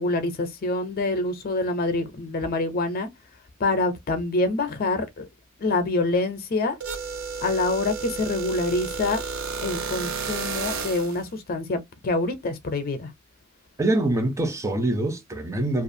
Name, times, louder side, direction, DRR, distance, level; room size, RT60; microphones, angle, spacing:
voice 1, 0.0-3.1 3.6-5.3 5.6-6.8 7.4-9.2 9.6-13.1, left 2 dB, 45° left, 0.5 m, -26 dB
sound 1, 6.8-11.2, right 5 dB, 75° right, 0.7 m, -32 dB
voice 2, 13.8-15.8, right 1 dB, 15° right, 0.5 m, -24 dB
2.4 x 2.3 x 2.6 m
head